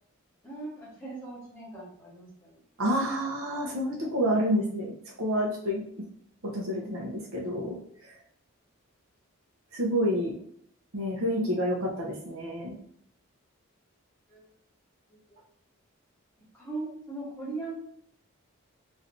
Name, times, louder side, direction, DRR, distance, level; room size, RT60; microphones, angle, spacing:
voice 1, 0.4-2.6 4.5-4.6 14.3-14.5 15.1-15.2 16.5-17.7, right 3 dB, 10° left, -7 dB, 1.1 m, -39 dB
voice 2, 2.8-5.8 6.4-7.8 8.0-8.1 9.7-10.4 10.9-12.8, equal, 70° right, -2 dB, 0.8 m, -29 dB
3.2 x 2.8 x 2.6 m, 0.65 s
head